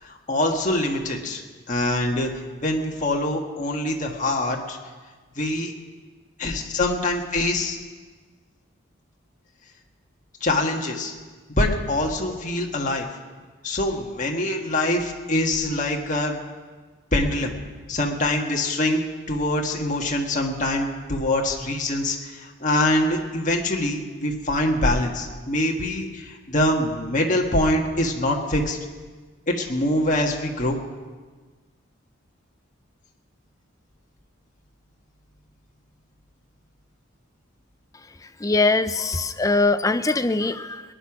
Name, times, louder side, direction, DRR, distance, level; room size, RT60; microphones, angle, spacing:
voice 1, 0.0-1.4 1.7-2.3 2.6-4.8 5.4-5.7 6.4-7.8 10.4-11.1 11.5-13.1 13.6-16.3 17.1-17.5 17.9-28.8 29.5-30.8, left 1 dB, 35° left, 1 dB, 1.6 m, -24 dB
voice 2, 38.4-40.8, left 3 dB, 15° left, 11 dB, 0.4 m, -22 dB
19.5 x 10.5 x 6.1 m, 1.4 s
head